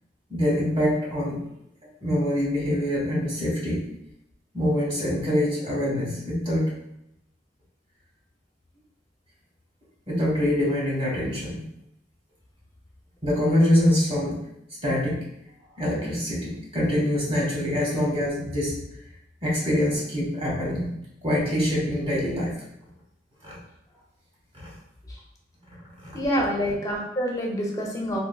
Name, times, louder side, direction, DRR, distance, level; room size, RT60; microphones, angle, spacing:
voice 1, 0.3-1.4 2.0-3.8 4.5-6.6 10.1-11.6 13.2-14.4 14.8-15.2 15.8-18.8 19.4-20.9 21.2-22.5 23.4-23.6 24.5-24.7 26.0-26.4, left 1 dB, 35° right, -5 dB, 1.2 m, -24 dB
voice 2, 26.1-28.2, equal, 20° left, -2 dB, 0.5 m, -27 dB
3.7 x 2.7 x 2.3 m, 0.80 s
head